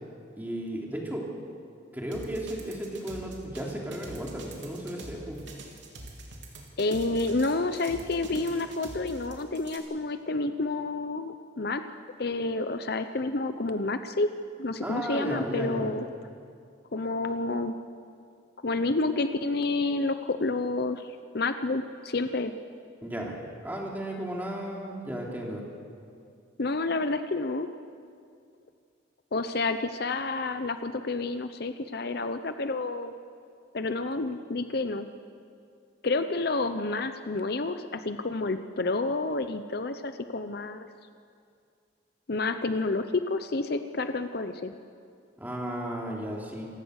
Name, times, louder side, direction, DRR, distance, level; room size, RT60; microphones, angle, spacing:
voice 1, 0.4-1.3 1.9-5.4 14.8-15.9 23.0-23.4 23.6-25.6 45.4-46.7, right 1 dB, 10° right, -2 dB, 3.1 m, -34 dB
sound 1, 2.1-9.8, right 2 dB, 75° right, 3.3 m, -44 dB
voice 2, 6.8-14.3 14.6-16.1 16.9-17.7 18.6-22.5 26.6-27.7 29.3-33.1 33.7-35.1 36.0-40.9 42.3-44.7, left 3 dB, 55° left, 9 dB, 0.7 m, -29 dB
27.0 x 16.0 x 6.5 m, 2.3 s
head